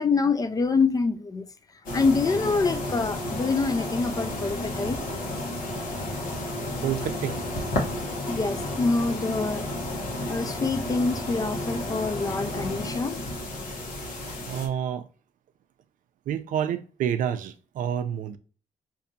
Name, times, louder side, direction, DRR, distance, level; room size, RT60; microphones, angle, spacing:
voice 1, 0.0-1.5 1.9-5.0 8.3-9.7 10.3-13.2, left 4 dB, 25° left, 0.3 m, -26 dB
sound 1, 1.9-14.7, left 1 dB, 90° left, 1.0 m, -32 dB
voice 2, 6.8-7.4 14.5-15.1 16.3-18.4, right 9 dB, 75° right, 0.4 m, -28 dB
4.9 x 2.6 x 2.6 m
cardioid pair, 80°, 14 cm